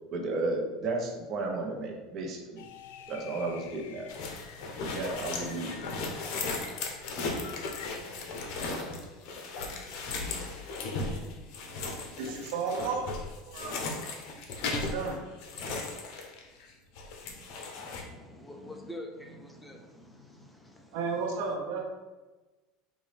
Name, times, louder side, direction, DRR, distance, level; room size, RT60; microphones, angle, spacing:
voice 1, 0.1-2.6 3.1-4.1 4.9-5.7, right 2 dB, 40° right, 0 dB, 1.0 m, -33 dB
sound 1, 2.6-7.9, left 9 dB, 90° left, 0.3 m, -48 dB
sound 2, 4.1-16.7 17.0-18.0, left 3 dB, 60° left, 0.8 m, -36 dB
voice 2, 12.1-13.1 13.4-13.8 14.6-15.2 20.9-21.8, right 5 dB, 75° right, 1 dB, 0.9 m, -33 dB
voice 3, 17.8-21.4, left 1 dB, 5° left, 2 dB, 0.5 m, -46 dB
5.1 x 2.6 x 3.4 m, 1.2 s
supercardioid pair, 125°, 0 cm